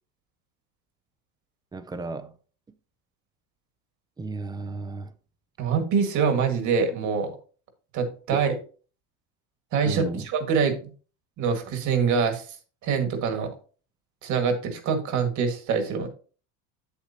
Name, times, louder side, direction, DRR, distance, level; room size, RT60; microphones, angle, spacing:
voice 1, 1.7-2.3 4.2-5.1 8.3-8.4 9.9-10.3, right 3 dB, 10° right, 0.4 m, -34 dB
voice 2, 5.6-7.3 7.9-8.6 9.7-10.8 11.4-12.4 12.8-13.5 14.2-16.1, right 6 dB, 45° right, 1.9 m, -24 dB
8.1 x 8.1 x 2.8 m
cardioid pair, 140°, 40 cm